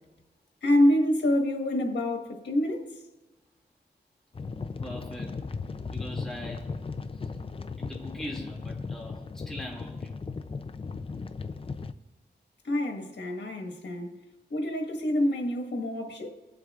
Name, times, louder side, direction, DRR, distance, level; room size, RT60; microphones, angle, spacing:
voice 1, 0.6-2.9 12.6-14.1 14.5-16.3, left 1 dB, 70° left, 1.6 m, -26 dB
sound 1, 4.3-11.9, left 4 dB, 30° left, 0.5 m, -37 dB
voice 2, 4.8-5.4 5.9-6.7 7.1-7.3 7.8-10.1, left 1 dB, 5° left, 2.3 m, -41 dB
22.0 x 7.8 x 2.5 m
wide cardioid pair, 135°, 18 cm